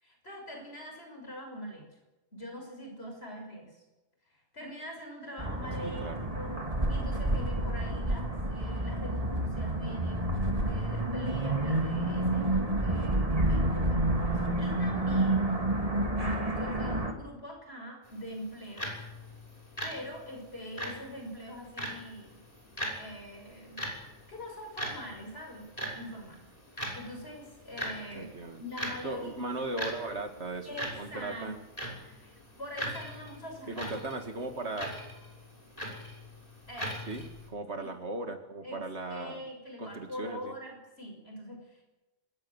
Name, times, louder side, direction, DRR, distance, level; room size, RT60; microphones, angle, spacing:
voice 1, 0.0-1.9 2.3-3.8 4.3-6.6 6.9-10.4 10.6-15.6 16.5-19.0 19.8-22.4 22.9-23.9 24.3-25.7 25.9-28.3 28.6-29.3 30.6-31.6 32.0-33.9 36.7-37.0 37.8-37.9 38.6-38.8 39.1-41.8, equal, 50° left, 2 dB, 6.6 m, -43 dB
sound 1, 5.4-17.1, right 1 dB, 25° right, 2.9 m, -29 dB
voice 2, 5.8-6.2 28.1-28.6 29.0-31.6 33.7-35.0 37.1-39.5 39.8-40.5, right 2 dB, 55° right, 5 dB, 2.6 m, -37 dB
Timex Office Clock Rear Perspective, 18.0-37.5, equal, 30° left, 6.4 m, -42 dB
25.5 x 21.0 x 7.4 m, 1.1 s
omnidirectional pair, 1.4 m